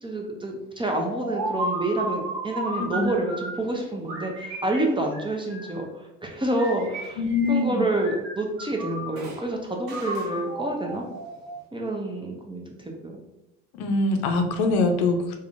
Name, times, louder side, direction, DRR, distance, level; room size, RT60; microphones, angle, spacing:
voice 1, 0.0-7.2 7.5-11.0 11.7-13.2, right 1 dB, 15° right, 1 dB, 0.5 m, -28 dB
sound 1, 0.9-3.6 4.1-5.9 6.5-7.7 7.9-9.4 9.9-11.7, right 1 dB, 70° right, 0.9 m, -34 dB
voice 2, 7.2-7.8 13.7-15.4, left 3 dB, 70° left, 5 dB, 0.6 m, -23 dB
3.6 x 2.1 x 2.4 m, 0.95 s
hypercardioid pair, 65°, 38 cm